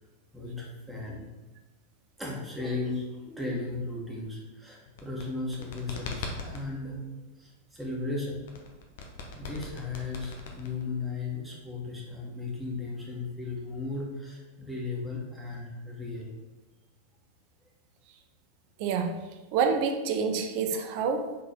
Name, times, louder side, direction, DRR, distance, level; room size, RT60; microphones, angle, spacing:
voice 1, 0.3-1.3 2.2-7.0 7.4-8.4 9.3-16.3, left 3 dB, 5° right, -4 dB, 1.9 m, -36 dB
sound 1, 4.9-6.7 8.5-11.0, left 3 dB, 55° left, 1.0 m, -40 dB
voice 2, 18.8-19.2 19.5-21.4, right 5 dB, 45° right, 6 dB, 0.7 m, -27 dB
5.4 x 4.0 x 5.2 m, 1.2 s
figure-of-eight pair, 90°, 0 cm